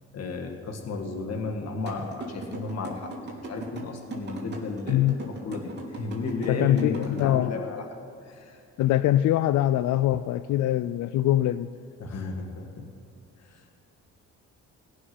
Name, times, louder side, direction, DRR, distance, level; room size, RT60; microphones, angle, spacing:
voice 1, 0.1-7.9 8.2-8.6 12.0-12.9 13.5-13.8, left 3 dB, 55° left, 3 dB, 1.8 m, -34 dB
sound 1, 1.9-7.2, right 2 dB, 35° right, 3.5 m, -37 dB
voice 2, 4.9-5.3 6.5-7.6 8.8-11.7, left 13 dB, 75° left, 13 dB, 0.4 m, -23 dB
17.5 x 6.3 x 9.5 m, 2.6 s
cardioid pair, 90°, 30 cm